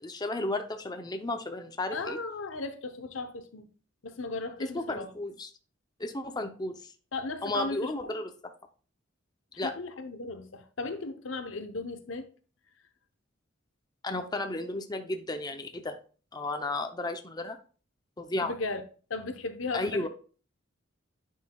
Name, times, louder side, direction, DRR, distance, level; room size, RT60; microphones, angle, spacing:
voice 1, 0.0-2.2 4.7-5.5 6.0-6.9 7.4-8.3 9.6-9.7 14.0-16.0 16.3-17.6 18.2-18.5 19.7-20.1, left 2 dB, 20° left, 0.6 m, -33 dB
voice 2, 1.9-3.7 4.0-5.1 7.1-7.9 9.6-12.3 18.4-18.8 19.1-20.1, left 3 dB, 85° left, 0.9 m, -36 dB
9.5 x 5.5 x 2.3 m
head